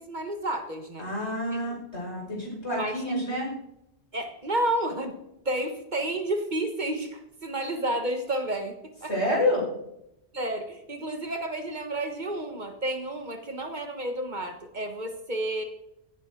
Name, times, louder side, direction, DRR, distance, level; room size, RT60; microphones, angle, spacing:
voice 1, 0.0-1.0 1.5-1.7 2.8-3.0 4.1-5.1 5.4-8.8 9.0-9.1 10.3-15.6, right 1 dB, 45° right, 6 dB, 1.6 m, -31 dB
voice 2, 1.0-3.5 9.1-9.6, left 1 dB, 75° left, -3 dB, 5.7 m, -28 dB
16.5 x 9.9 x 3.8 m, 0.81 s
omnidirectional pair, 1.1 m